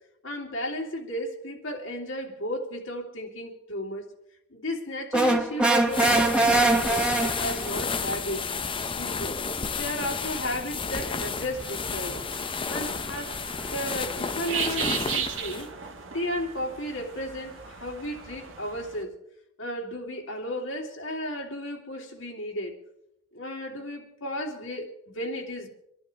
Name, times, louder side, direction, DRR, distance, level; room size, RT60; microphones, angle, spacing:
voice 1, 0.2-4.1 4.5-8.5 8.9-12.2 12.7-13.4 13.7-15.7 16.1-19.1 19.6-22.8 23.3-25.7, equal, 90° left, 3.1 m, -34 dB
sound 1, 5.1-7.7, right 2 dB, 5° right, 1.4 m, -22 dB
sound 2, 5.8-15.7, left 5 dB, 25° left, 0.7 m, -32 dB
sound 3, 11.1-19.0, right 6 dB, 85° right, 1.7 m, -37 dB
27.0 x 11.5 x 3.4 m
head